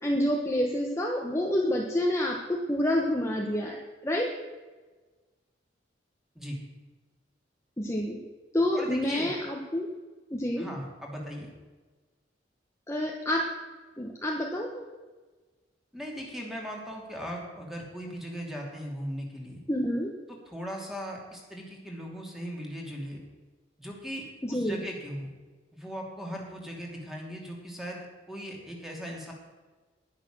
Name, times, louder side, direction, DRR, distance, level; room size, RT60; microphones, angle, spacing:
voice 1, 0.0-3.8 4.0-4.3 7.8-8.2 8.5-9.9 10.3-10.6 12.9-13.5 14.0-14.9 19.7-20.1 24.4-24.8, left 1 dB, 15° left, -1 dB, 1.2 m, -28 dB
voice 2, 8.7-9.3 10.6-11.5 15.9-19.6 20.5-23.2 23.8-25.3 25.7-28.0 28.3-29.3, equal, ahead, -1 dB, 2.9 m, -38 dB
11.0 x 10.5 x 6.3 m, 1.3 s
head